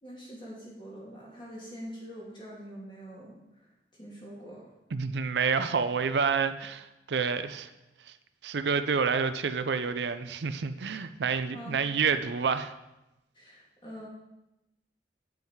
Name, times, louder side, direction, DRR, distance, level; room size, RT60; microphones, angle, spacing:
voice 1, 0.0-3.3 3.9-4.6 11.5-11.8 13.3-14.1, equal, 25° left, -4 dB, 2.2 m, -44 dB
voice 2, 4.9-7.7 8.4-12.7, right 5 dB, 80° right, 10 dB, 0.5 m, -28 dB
9.1 x 5.6 x 4.6 m, 0.94 s
head